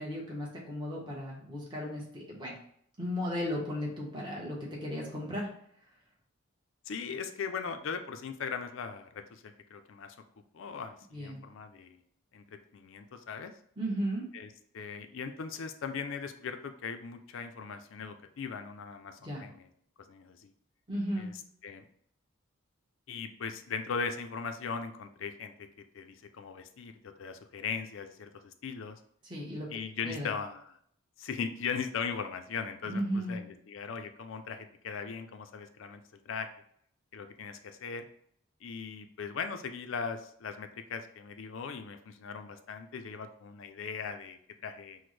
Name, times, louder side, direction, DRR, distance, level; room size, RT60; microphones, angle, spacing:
voice 1, 0.0-2.6 3.0-5.5 11.1-11.4 13.8-14.2 19.2-19.5 20.9-21.3 29.3-29.7 30.0-30.3 32.9-33.4, equal, 20° right, -4 dB, 1.0 m, -35 dB
voice 2, 6.9-10.2 10.5-12.0 12.3-13.5 14.3-14.5 14.7-19.7 20.1-20.5 21.2-21.3 21.6-21.8 23.1-29.0 29.7-30.6 31.2-36.5 37.1-38.1 38.6-45.0, left 5 dB, 65° left, 7 dB, 0.4 m, -39 dB
6.0 x 2.1 x 3.2 m, 0.64 s
head